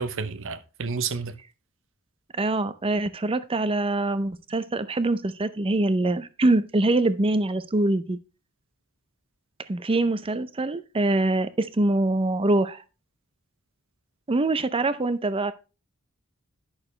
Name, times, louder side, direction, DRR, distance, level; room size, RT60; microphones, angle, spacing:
voice 1, 0.0-1.3, right 5 dB, 65° right, 0.8 m, -30 dB
voice 2, 2.4-8.2 9.7-12.8 14.3-15.5, right 2 dB, 25° right, 0.6 m, -24 dB
11.0 x 6.4 x 3.2 m
head